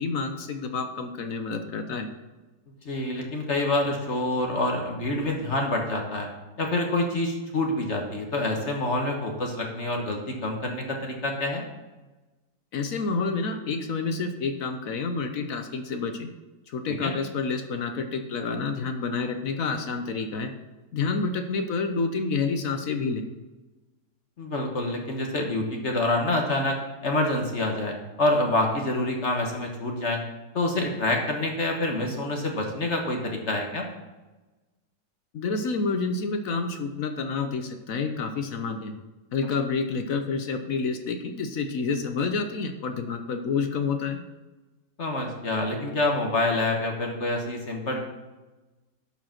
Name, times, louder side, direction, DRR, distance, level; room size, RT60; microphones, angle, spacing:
voice 1, 0.0-2.1 12.7-16.3 16.7-20.5 20.9-23.2 35.3-38.9 39.3-44.2, left 4 dB, 55° left, 7 dB, 1.0 m, -29 dB
voice 2, 2.8-6.3 6.6-11.6 16.9-17.1 24.4-30.2 30.5-33.9 45.0-48.0, left 2 dB, 40° left, 2 dB, 1.5 m, -27 dB
11.5 x 4.9 x 5.9 m, 1.1 s
omnidirectional pair, 2.0 m